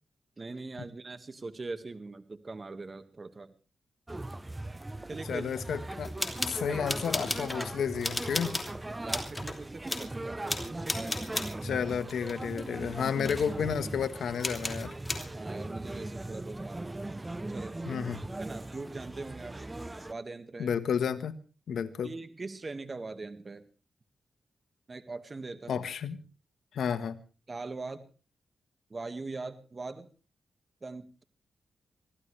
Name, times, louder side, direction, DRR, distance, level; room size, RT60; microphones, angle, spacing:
voice 1, 0.4-3.5 5.1-5.5 6.7-6.8 9.0-11.3 15.3-17.0 17.5-17.8 18.4-19.6 20.1-20.7 22.0-23.6 24.9-25.9 27.5-28.1 28.9-30.1 30.8-31.2, right 3 dB, 40° right, 10 dB, 1.7 m, -41 dB
sound 1, 4.1-20.1, right 2 dB, 20° right, 0.8 m, -39 dB
voice 2, 5.3-6.1 6.5-8.6 11.6-14.9 17.9-18.2 20.6-21.3 21.7-22.1 25.7-26.2 26.7-27.2, left 7 dB, 85° left, 12 dB, 1.3 m, -31 dB
sound 2, 6.0-7.7 8.0-8.7 9.1-9.6 9.9-10.1 10.5-11.6 12.1-13.0 13.2-13.5 14.4-15.3, left 1 dB, 15° left, 3.1 m, -35 dB
24.5 x 16.0 x 3.3 m, 0.36 s
cardioid pair, 60°, 0 cm